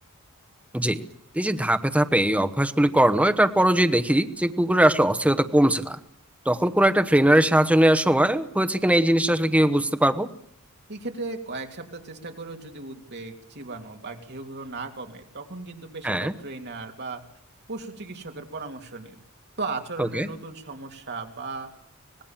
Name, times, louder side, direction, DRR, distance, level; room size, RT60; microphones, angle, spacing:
voice 1, 1.3-6.0 6.5-10.3 16.0-16.3 20.0-20.3, right 1 dB, 5° right, 8 dB, 1.1 m, -20 dB
voice 2, 10.9-17.2 17.7-19.2 19.6-21.7, right 3 dB, 50° right, 3 dB, 3.2 m, -36 dB
25.0 x 18.5 x 7.3 m, 0.70 s
head